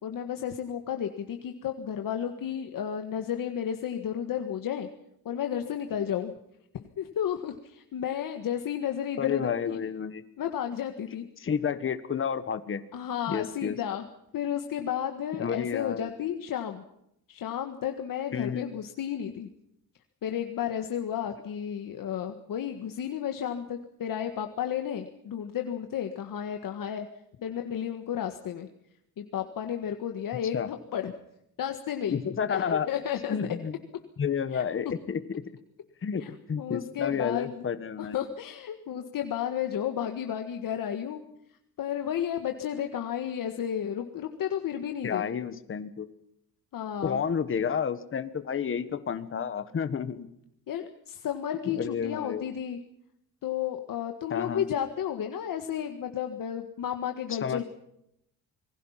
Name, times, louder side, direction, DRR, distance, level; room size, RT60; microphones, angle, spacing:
voice 1, 0.0-4.9 5.2-6.3 6.7-9.8 10.4-11.3 12.9-14.1 14.3-16.8 17.3-19.5 20.2-27.1 27.4-28.7 29.2-31.1 31.6-32.2 32.5-33.4 34.5-34.6 36.2-36.3 36.6-37.6 38.0-41.2 41.8-45.3 46.7-47.2 50.7-52.8 53.4-57.6, left 9 dB, 65° left, 5 dB, 1.7 m, -32 dB
voice 2, 9.2-10.2 11.4-12.8 13.3-13.8 15.4-16.1 18.3-18.7 30.5-30.7 32.1-32.9 33.3-33.7 34.2-35.2 36.0-38.2 45.0-46.1 47.0-50.3 51.6-52.4 54.3-54.6 57.4-57.6, left 7 dB, 35° left, 11 dB, 1.5 m, -30 dB
27.5 x 20.5 x 5.8 m, 0.78 s
cardioid pair, 140°, 36 cm